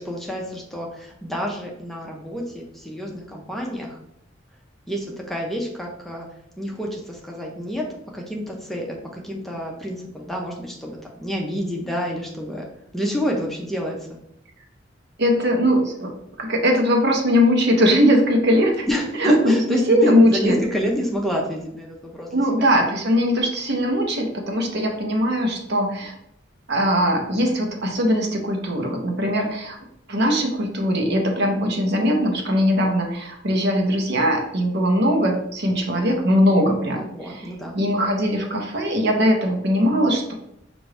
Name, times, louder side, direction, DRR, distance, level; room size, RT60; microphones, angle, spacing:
voice 1, 0.0-4.0 4.9-6.3 6.6-7.9 8.1-10.9 11.2-12.6 12.9-14.2 18.9-22.7 35.6-35.8 37.0-37.8, equal, ahead, -1 dB, 0.6 m, -28 dB
voice 2, 15.2-16.1 16.4-18.9 19.2-20.6 22.3-26.1 26.7-29.8 30.1-40.3, equal, 60° right, 2 dB, 0.9 m, -20 dB
5.8 x 2.6 x 3.3 m, 0.76 s
head